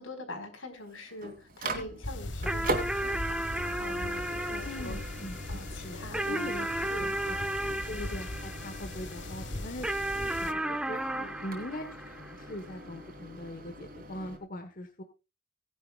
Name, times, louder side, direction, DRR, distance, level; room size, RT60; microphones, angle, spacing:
voice 1, 0.0-5.2 5.5-7.2 7.6-7.8 11.1-11.3, left 1 dB, 80° left, 5 dB, 4.5 m, -44 dB
Microwave oven, 0.7-14.4, right 2 dB, 45° right, 2.7 m, -42 dB
sound 1, 2.0-10.5, left 2 dB, 60° left, 1.5 m, -40 dB
sound 2, 2.5-9.2 9.8-12.6, right 1 dB, 5° right, 0.9 m, -34 dB
voice 2, 4.6-5.6 5.9-7.4 7.9-9.9 10.1-11.0 11.4-15.0, left 1 dB, 45° left, 6 dB, 1.3 m, -41 dB
18.5 x 10.5 x 2.4 m, 0.29 s
head